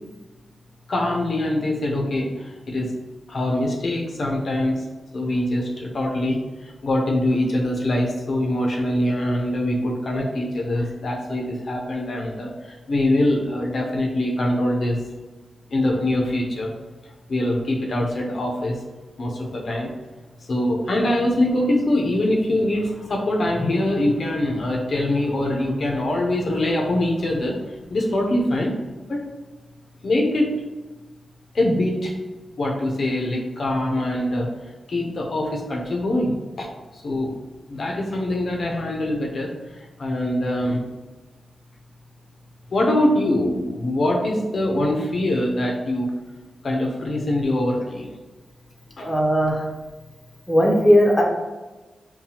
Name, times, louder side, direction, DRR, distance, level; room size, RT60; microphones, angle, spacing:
voice 1, 0.9-2.9 3.3-4.8 5.1-15.0 15.7-16.7 17.3-18.8 19.2-19.9 20.5-27.6 27.9-28.7 29.1-29.2 30.0-30.5 31.5-32.1 32.6-34.5 34.9-37.3 37.7-40.8 42.7-46.1 46.6-48.1 49.0-49.1, left 1 dB, 55° left, 0 dB, 0.5 m, -23 dB
voice 2, 49.0-49.6 50.5-51.2, equal, 15° left, -1 dB, 0.7 m, -17 dB
5.5 x 2.2 x 2.8 m, 1.2 s
wide cardioid pair, 100°, 0 cm